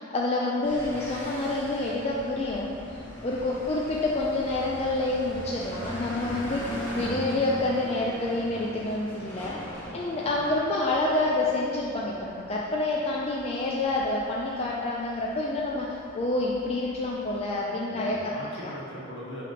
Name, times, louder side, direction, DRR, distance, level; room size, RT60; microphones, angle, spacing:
voice 1, 0.0-2.7 3.2-9.6 9.9-15.9 16.1-18.2 18.6-18.7, left 2 dB, 30° left, -4 dB, 0.4 m, -28 dB
sound 1, 0.6-17.4, equal, 10° left, 1.3 m, -41 dB
voice 2, 3.0-3.3 9.8-10.3 17.9-19.4, equal, 65° left, -6 dB, 1.4 m, -42 dB
5.0 x 3.5 x 5.6 m, 2.5 s
head